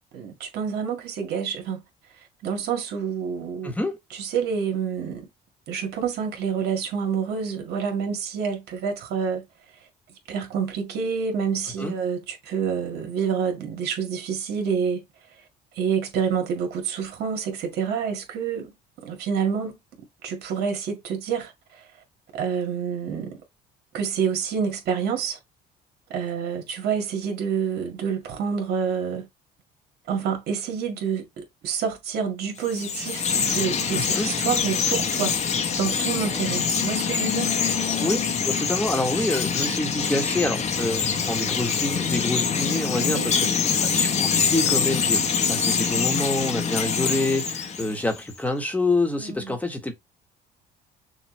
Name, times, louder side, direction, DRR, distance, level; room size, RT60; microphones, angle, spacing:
voice 1, 0.1-1.8 2.4-3.7 4.1-5.3 5.7-9.4 10.3-15.0 15.8-19.8 20.2-21.8 22.3-23.4 23.9-25.4 26.1-29.3 30.1-35.4 35.8-37.5 43.0-43.5 49.2-49.6, right 6 dB, 75° right, 1.9 m, -28 dB
voice 2, 3.6-4.0 11.8-11.9 33.9-34.3 38.0-38.2 38.4-43.4 43.8-49.9, left 2 dB, 10° left, 1.2 m, -27 dB
Chirp tweet, 32.6-48.2, left 6 dB, 40° left, 1.0 m, -25 dB
6.2 x 2.4 x 3.2 m
cardioid pair, 110°, 17 cm